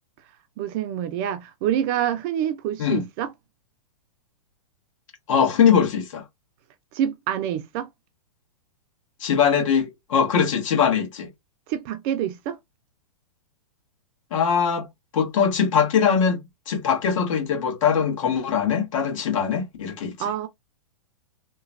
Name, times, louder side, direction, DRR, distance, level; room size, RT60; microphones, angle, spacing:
voice 1, 0.6-3.3 6.9-7.9 11.7-12.6 20.2-20.5, right 10 dB, 35° right, 0.5 m, -26 dB
voice 2, 5.3-6.2 9.2-11.3 14.3-14.9 15.1-20.1, left 7 dB, 60° left, 1.3 m, -21 dB
3.0 x 2.1 x 2.5 m
hypercardioid pair, 135°, 18 cm